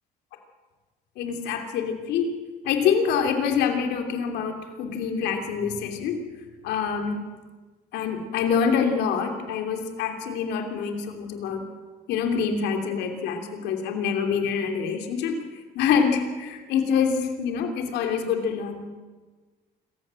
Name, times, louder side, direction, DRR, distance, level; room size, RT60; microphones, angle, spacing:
voice 1, 1.2-2.3 2.6-6.2 6.6-7.3 7.9-11.7 12.1-15.4 15.7-18.9, left 6 dB, 85° left, 4 dB, 3.0 m, -26 dB
25.5 x 15.0 x 7.7 m, 1.3 s
cardioid pair, 110°, 17 cm